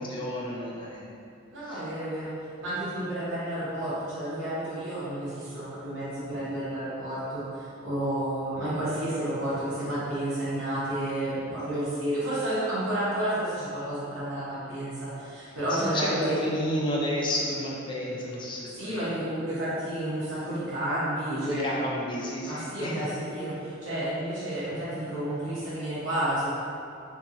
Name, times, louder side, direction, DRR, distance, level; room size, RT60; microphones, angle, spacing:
voice 1, 0.1-1.1 1.6-1.8 15.7-19.1 21.2-23.1, equal, 25° left, -4 dB, 0.4 m, -31 dB
voice 2, 1.5-2.3 2.6-16.4 18.7-21.8 22.4-26.5, right 1 dB, 90° right, -12 dB, 0.9 m, -31 dB
2.7 x 2.7 x 2.5 m, 2.6 s
head